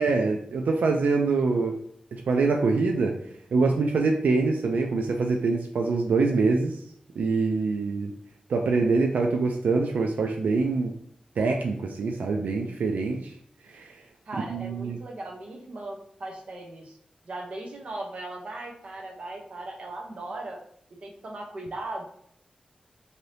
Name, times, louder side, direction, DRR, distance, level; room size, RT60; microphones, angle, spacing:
voice 1, 0.0-1.8 2.1-3.1 3.5-6.8 7.2-8.1 8.5-10.9 11.4-13.3 13.7-13.9 14.5-15.0, right 4 dB, 90° right, 2 dB, 0.3 m, -24 dB
voice 2, 14.3-17.0 17.2-20.6 21.0-22.1, right 2 dB, 50° right, 0 dB, 0.7 m, -38 dB
2.7 x 2.6 x 3.2 m, 0.68 s
wide cardioid pair, 165°, 3 cm